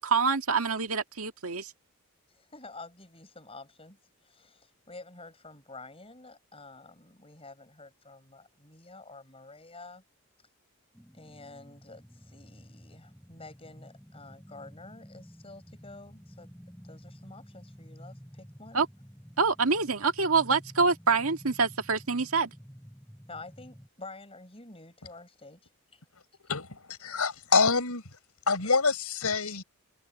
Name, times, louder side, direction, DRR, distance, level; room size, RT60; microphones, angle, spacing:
voice 1, 0.0-1.7 18.7-18.9 19.4-22.5, right 4 dB, 70° right, 1.9 m, -26 dB
voice 2, 2.3-10.0 11.1-16.5 16.8-18.8 23.3-26.0, left 3 dB, 25° left, 6.1 m, -49 dB
sound 1, 10.9-23.9, equal, 5° left, 4.3 m, -51 dB
voice 3, 26.5-28.0 28.5-29.6, left 4 dB, 90° left, 4.8 m, -26 dB
head